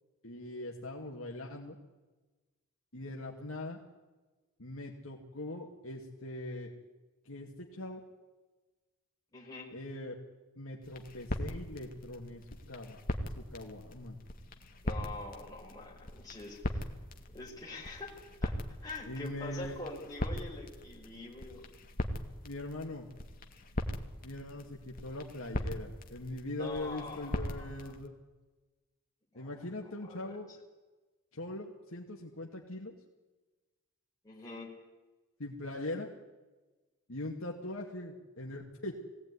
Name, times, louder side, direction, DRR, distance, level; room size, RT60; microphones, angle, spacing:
voice 1, 0.2-1.8 2.9-3.8 4.6-6.7 7.2-8.0 9.7-10.2 10.6-12.4 12.7-13.0 13.4-14.2 19.1-19.8 22.4-23.1 24.2-28.1 29.3-30.5 31.3-32.9 35.4-36.1 37.1-38.9, left 1 dB, 75° left, -1 dB, 2.4 m, -41 dB
voice 2, 9.3-9.7 14.8-16.9 17.3-18.1 18.4-18.5 18.8-21.6 26.5-27.9 29.3-29.6 30.0-30.3 34.2-34.7, left 2 dB, 15° left, -3 dB, 5.8 m, -45 dB
sound 1, 10.8-28.1, left 1 dB, 40° left, 2.1 m, -40 dB
21.0 x 17.5 x 9.8 m, 1.2 s
head